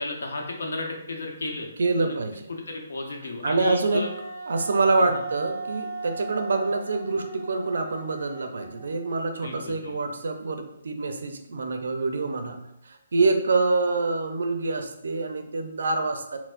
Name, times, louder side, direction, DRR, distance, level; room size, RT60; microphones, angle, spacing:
voice 1, 0.0-1.7 2.0-2.2 2.5-4.1 9.4-10.1, left 2 dB, 85° left, 1 dB, 0.7 m, -33 dB
voice 2, 1.8-2.4 3.4-4.1 4.5-12.6 12.8-16.4, right 3 dB, 70° right, 6 dB, 0.4 m, -26 dB
Wind instrument woodwind instrument, 3.9-9.3, right 3 dB, 15° left, 0.6 m, -37 dB
4.3 x 2.0 x 2.5 m, 0.84 s
hypercardioid pair, 175°, 0 cm